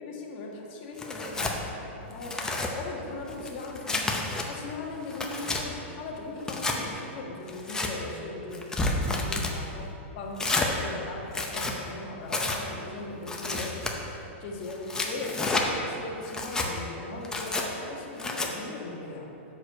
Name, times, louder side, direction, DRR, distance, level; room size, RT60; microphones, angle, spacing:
voice 1, 0.0-9.8 10.1-19.5, left 3 dB, 45° left, -1 dB, 1.3 m, -39 dB
Tearing, 1.0-1.6 2.1-2.7 3.3-4.5 4.9-5.6 6.4-6.8 7.5-7.9 8.5-9.5 10.4-10.7 11.3-11.8 12.3-12.6 13.3-13.9 14.7-15.7 16.2-16.7 17.2-17.6 18.2-18.5, left 2 dB, 10° left, 0.6 m, -30 dB
6.2 x 4.8 x 6.6 m, 2.9 s
hypercardioid pair, 145°, 7 cm